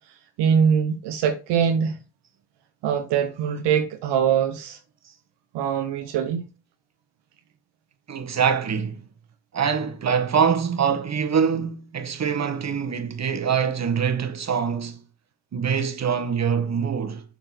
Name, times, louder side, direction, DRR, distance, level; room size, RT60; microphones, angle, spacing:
voice 1, 0.4-2.0 2.8-4.8 5.5-6.5, right 7 dB, 75° right, 1.0 m, -22 dB
voice 2, 8.1-9.0 9.5-15.0 15.5-17.2, right 7 dB, 40° right, 1.6 m, -24 dB
6.9 x 4.4 x 6.1 m
supercardioid pair, 70°, 41 cm